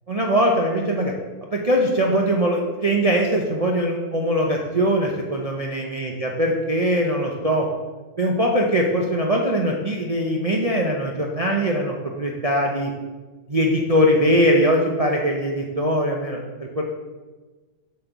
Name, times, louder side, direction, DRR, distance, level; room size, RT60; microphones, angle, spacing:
voice 1, 0.1-1.1 1.5-7.7 8.2-12.9 13.5-16.8, equal, 35° right, -1 dB, 0.6 m, -21 dB
7.2 x 4.4 x 6.8 m, 1.3 s
omnidirectional pair, 1.6 m